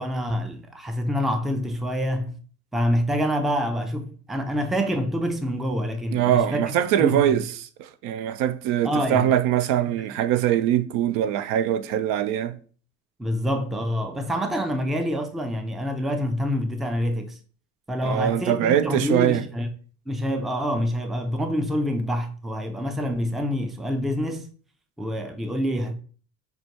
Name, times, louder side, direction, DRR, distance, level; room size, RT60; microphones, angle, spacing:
voice 1, 0.0-2.4 2.7-6.7 7.0-7.4 8.8-9.3 10.0-10.1 13.2-17.4 17.9-19.7 20.1-24.5 25.0-25.9, equal, ahead, 0.4 m, -26 dB
voice 2, 6.1-7.4 7.8-12.6 18.0-19.4, right 11 dB, 55° right, 0.5 m, -22 dB
5.8 x 2.2 x 2.8 m
hypercardioid pair, 65°, 40 cm